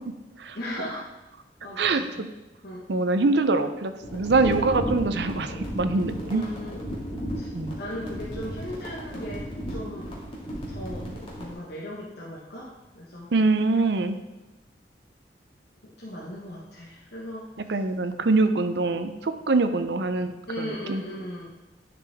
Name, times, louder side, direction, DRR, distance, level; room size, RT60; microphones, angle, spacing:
voice 1, 0.5-1.1 1.6-2.3 2.6-2.9 6.3-6.9 7.4-10.2 10.4-11.1 11.4-13.3 15.8-17.8 18.3-18.5 20.5-21.5, left 1 dB, 65° left, -5 dB, 1.3 m, -38 dB
voice 2, 1.8-2.3 2.9-6.4 7.5-7.8 13.3-14.2 17.7-21.0, right 3 dB, 70° right, 9 dB, 0.6 m, -24 dB
sound 1, 4.0-11.5, equal, 35° left, 2.1 m, -34 dB
10.5 x 5.1 x 3.5 m, 1.1 s
head